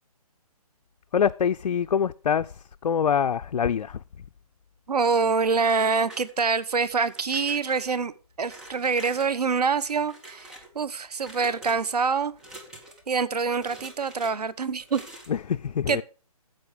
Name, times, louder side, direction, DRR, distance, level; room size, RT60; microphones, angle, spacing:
voice 1, 1.1-2.5 2.8-4.0 15.3-16.0, left 7 dB, 85° left, 0.4 m, -24 dB
voice 2, 4.9-8.1 8.4-12.3 13.1-15.0 15.9-16.0, right 5 dB, 85° right, 1.0 m, -25 dB
sound 1, 5.5-6.6 7.0-7.9 8.4-9.4 9.8-10.7 11.2-11.8 12.4-13.1 13.5-14.3 14.8-15.4, right 1 dB, 5° right, 0.7 m, -46 dB
9.5 x 7.7 x 4.9 m
hypercardioid pair, 165°, 20 cm